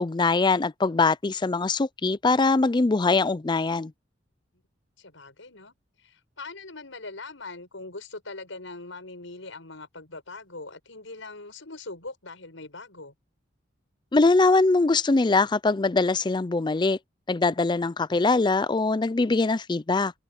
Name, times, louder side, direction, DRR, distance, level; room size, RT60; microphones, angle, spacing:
voice 1, 0.0-3.9 14.1-17.0 17.3-20.1, left 3 dB, 25° left, 0.4 m, -22 dB
voice 2, 5.0-13.1, left 3 dB, 80° left, 5.7 m, -41 dB
head